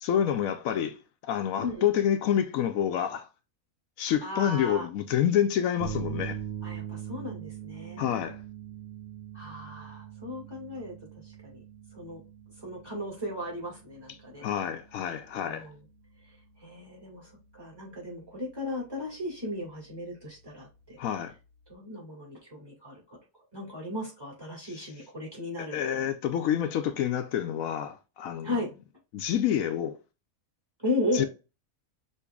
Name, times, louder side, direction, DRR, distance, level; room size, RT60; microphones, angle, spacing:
voice 1, 0.0-3.3 4.0-6.4 8.0-8.4 14.4-15.7 21.0-21.3 25.6-28.5 29.1-30.0 31.1-31.3, left 9 dB, 75° left, 0.9 m, -28 dB
voice 2, 1.6-1.9 4.2-4.9 6.6-8.0 9.3-10.9 11.2-11.6 11.9-12.2 12.6-14.4 15.4-15.8 16.6-21.0 21.7-23.2 23.5-26.0 28.4-28.7 30.8-31.3, left 1 dB, 15° right, 2.2 m, -35 dB
sound 1, 5.8-21.7, right 10 dB, 80° right, 0.4 m, -44 dB
6.4 x 2.9 x 2.3 m
omnidirectional pair, 1.5 m